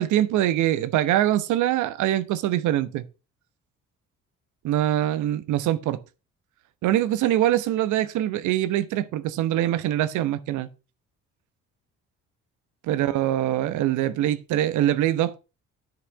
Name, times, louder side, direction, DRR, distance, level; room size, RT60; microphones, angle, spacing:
voice 1, 0.0-3.0 4.6-6.0 6.8-10.7 12.8-15.4, right 13 dB, 75° right, 1.1 m, -23 dB
10.0 x 6.0 x 5.7 m
supercardioid pair, 70°, 30 cm